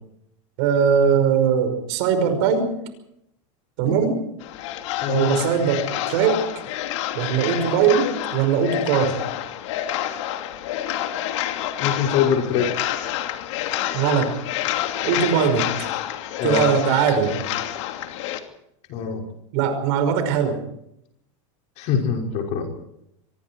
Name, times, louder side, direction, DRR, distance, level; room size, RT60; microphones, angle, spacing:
voice 1, 0.6-2.7 3.8-4.2 5.1-6.4 7.1-9.2 13.9-14.4 15.0-15.9 16.4-17.4 19.5-20.6, right 7 dB, 55° right, 9 dB, 5.5 m, -20 dB
sound 1, 4.4-18.4, left 12 dB, 65° left, 2.8 m, -28 dB
voice 2, 5.0-5.4 11.8-12.7 16.4-16.7 18.9-19.2 21.8-22.7, left 7 dB, 45° left, 2 dB, 6.0 m, -23 dB
24.5 x 23.5 x 4.7 m, 0.77 s
supercardioid pair, 155°, 17 cm